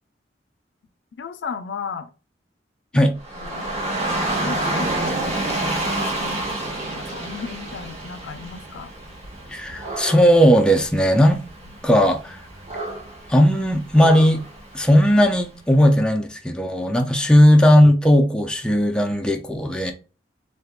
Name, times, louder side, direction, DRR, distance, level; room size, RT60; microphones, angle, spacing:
voice 1, 1.1-2.1 2.9-3.0 3.4-3.7 4.4-6.5 6.9-8.9 17.2-17.3, left 6 dB, 80° left, 0.4 m, -35 dB
Dog / Rain, 3.2-15.4, right 1 dB, 40° right, 1.1 m, -29 dB
voice 2, 9.5-11.4 11.8-12.4 13.3-14.4 14.7-19.9, equal, 5° left, 0.4 m, -16 dB
3.5 x 2.6 x 2.4 m
head